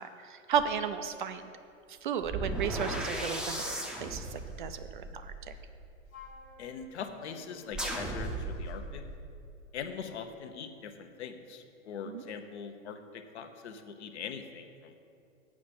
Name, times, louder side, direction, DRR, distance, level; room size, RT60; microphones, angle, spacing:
voice 1, 0.0-1.5 1.9-5.5 12.1-12.2, right 7 dB, 40° right, 10 dB, 0.4 m, -34 dB
sound 1, 0.5-0.7 2.2-6.3 7.7-9.2, right 1 dB, ahead, 0.6 m, -36 dB
Wind instrument woodwind instrument, 6.1-9.0, left 3 dB, 90° left, 1.2 m, -54 dB
voice 2, 6.6-9.0 9.7-14.9, left 6 dB, 55° left, 7 dB, 0.9 m, -42 dB
7.4 x 5.8 x 7.7 m, 2.4 s
figure-of-eight pair, 105°, 40 cm